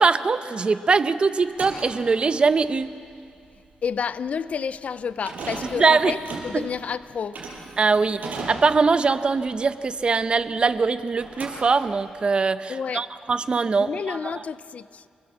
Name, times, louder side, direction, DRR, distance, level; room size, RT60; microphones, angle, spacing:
voice 1, 0.0-2.9 5.8-6.1 6.5-6.7 7.8-14.3, right 4 dB, 35° right, 0.8 m, -22 dB
sound 1, 1.4-10.9 11.1-12.2, right 3 dB, 70° right, 5.8 m, -38 dB
voice 2, 3.8-6.2 6.4-7.4 12.7-13.1 13.8-15.0, left 6 dB, 50° left, 0.5 m, -30 dB
28.5 x 20.0 x 7.4 m
cardioid pair, 115°, 3 cm